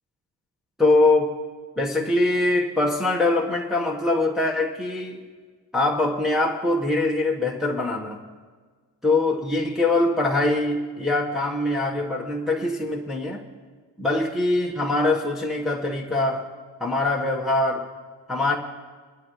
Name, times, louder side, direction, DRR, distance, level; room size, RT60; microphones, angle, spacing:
voice 1, 0.8-1.4 1.8-5.2 5.7-8.2 9.0-13.4 14.0-16.5 16.8-17.9 18.3-18.6, left 2 dB, ahead, -3 dB, 1.4 m, -23 dB
24.5 x 11.5 x 3.2 m, 1.5 s
cardioid pair, 100°, 44 cm